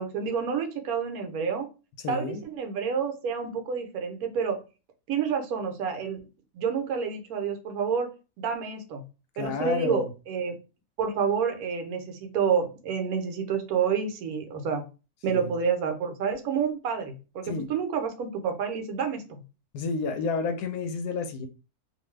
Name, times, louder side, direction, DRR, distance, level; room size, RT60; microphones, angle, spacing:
voice 1, 0.0-1.7 2.1-4.6 5.1-6.2 6.5-8.1 8.4-9.0 9.4-10.6 11.0-14.8 15.2-19.4, right 6 dB, 75° right, 6 dB, 1.1 m, -29 dB
voice 2, 2.0-2.4 9.3-10.1 15.3-15.5 17.4-17.7 19.7-21.5, left 4 dB, 90° left, 6 dB, 1.1 m, -30 dB
2.6 x 2.4 x 3.1 m, 0.31 s
omnidirectional pair, 1.6 m